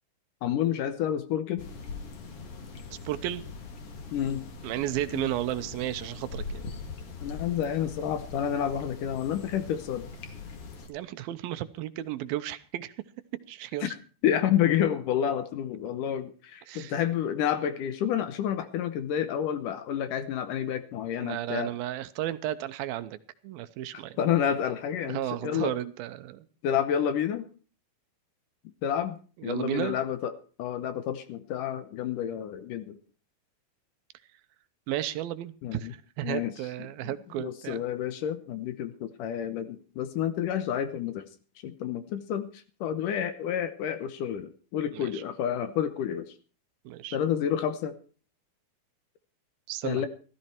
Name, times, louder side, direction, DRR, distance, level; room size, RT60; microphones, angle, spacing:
voice 1, 0.4-1.7 4.1-4.4 5.1-5.3 7.2-10.1 13.8-14.0 14.2-21.7 23.9-25.7 26.6-27.5 28.8-29.2 29.4-30.3 30.6-33.0 35.6-35.9 36.2-36.5 37.0-41.3 41.6-46.3 47.1-47.9 49.8-50.1, left 9 dB, 70° left, 11 dB, 2.3 m, -29 dB
sound 1, 1.6-10.9, left 4 dB, 45° left, 2.6 m, -41 dB
voice 2, 3.1-3.4 4.6-6.6 10.9-12.9 13.5-13.9 16.7-16.9 20.6-20.7 21.2-23.2 23.4-24.2 25.1-26.5 29.4-30.0 34.9-37.8 44.9-45.2 46.9-47.2 49.7-50.1, right 13 dB, 80° right, 12 dB, 2.6 m, -33 dB
15.5 x 14.0 x 4.4 m, 0.39 s
omnidirectional pair, 4.3 m